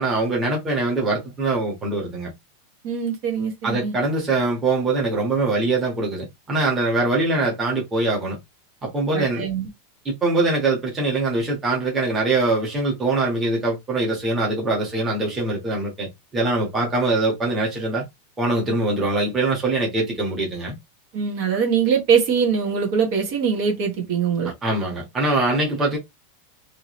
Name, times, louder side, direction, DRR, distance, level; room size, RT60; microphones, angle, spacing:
voice 1, 0.0-2.3 3.6-8.4 8.8-9.4 10.0-18.0 18.4-20.7 24.6-26.0, right 2 dB, 15° right, 1.4 m, -23 dB
voice 2, 2.8-3.9 9.1-9.7 21.1-24.5, right 6 dB, 40° right, 1.3 m, -22 dB
3.5 x 2.8 x 3.1 m
supercardioid pair, 175°, 0 cm